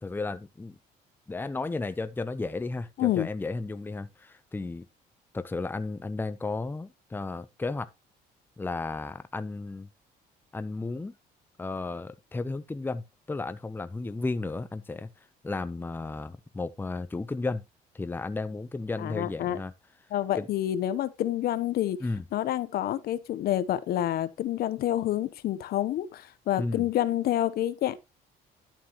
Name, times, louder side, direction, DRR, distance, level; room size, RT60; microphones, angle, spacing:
voice 1, 0.0-0.8 1.3-4.9 5.3-7.9 8.6-9.9 10.5-11.1 11.6-15.1 15.4-17.6 17.9-19.7 20.4-20.5 22.0-22.2 26.6-26.9, left 3 dB, 10° left, 0.7 m, -33 dB
voice 2, 3.0-3.3 19.0-19.6 20.1-22.0 22.3-28.0, left 12 dB, 65° left, 0.9 m, -28 dB
11.5 x 7.4 x 3.0 m
cardioid pair, 110°, 17 cm